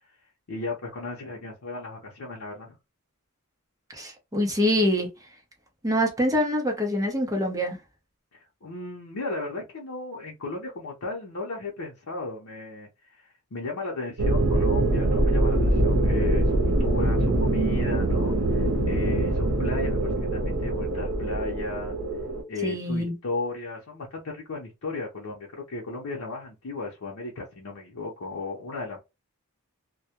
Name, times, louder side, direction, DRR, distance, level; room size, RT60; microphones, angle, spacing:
voice 1, 0.5-2.8 8.3-22.0 22.5-29.0, left 3 dB, 70° left, 0.6 m, -35 dB
voice 2, 3.9-5.1 5.8-7.8 22.6-23.1, equal, 15° right, 0.6 m, -25 dB
sound 1, 14.2-22.4, right 1 dB, 80° right, 0.7 m, -24 dB
2.2 x 2.1 x 2.8 m
head